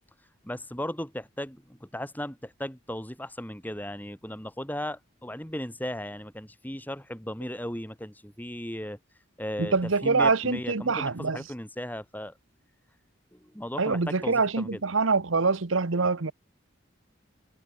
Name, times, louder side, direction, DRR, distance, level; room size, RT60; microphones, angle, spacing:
voice 1, 0.4-9.0 9.4-9.7 10.0-12.3 13.3-14.8, left 1 dB, 10° left, 5.1 m, -36 dB
voice 2, 9.6-11.4 13.8-16.3, right 4 dB, 80° right, 1.1 m, -25 dB
head